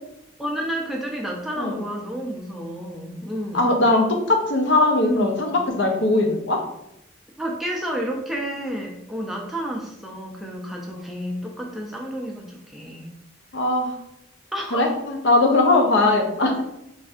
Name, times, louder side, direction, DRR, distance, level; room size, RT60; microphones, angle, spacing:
voice 1, 0.4-3.8 5.0-5.5 7.4-13.1 14.5-14.9, equal, ahead, -2 dB, 0.4 m, -30 dB
voice 2, 3.5-6.6 13.5-13.9 14.7-16.6, left 2 dB, 60° left, 3 dB, 0.5 m, -20 dB
3.3 x 2.6 x 2.4 m, 0.83 s
head